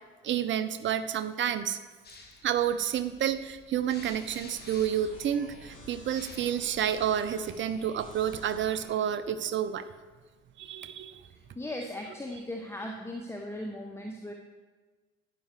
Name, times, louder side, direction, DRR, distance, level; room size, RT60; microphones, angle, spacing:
voice 1, 0.2-1.8 2.4-9.9 10.6-11.2, right 9 dB, 30° right, 11 dB, 0.7 m, -30 dB
sound 1, 2.0-7.6, left 3 dB, 25° left, 1.5 m, -52 dB
sound 2, 3.9-8.9, left 1 dB, 50° left, 3.6 m, -50 dB
voice 2, 11.3-14.3, left 1 dB, 5° left, 2 dB, 0.8 m, -38 dB
11.5 x 9.2 x 3.4 m, 1.3 s
figure-of-eight pair, 60°, 40 cm